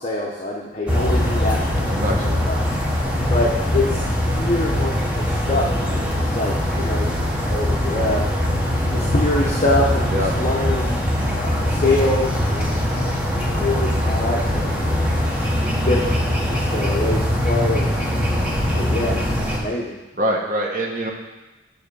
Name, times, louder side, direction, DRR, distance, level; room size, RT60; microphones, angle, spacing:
voice 1, 0.0-2.6 3.3-7.1 7.4-8.3 8.9-11.0 11.3-15.0 15.7-18.0 18.8-19.9, left 2 dB, 35° left, -3 dB, 0.9 m, -25 dB
sound 1, 0.9-19.6, left 1 dB, 5° right, 1.0 m, -22 dB
voice 2, 1.9-2.3 10.1-10.3 20.1-21.1, equal, 45° right, 0 dB, 1.2 m, -24 dB
9.3 x 3.7 x 6.8 m, 1.1 s
head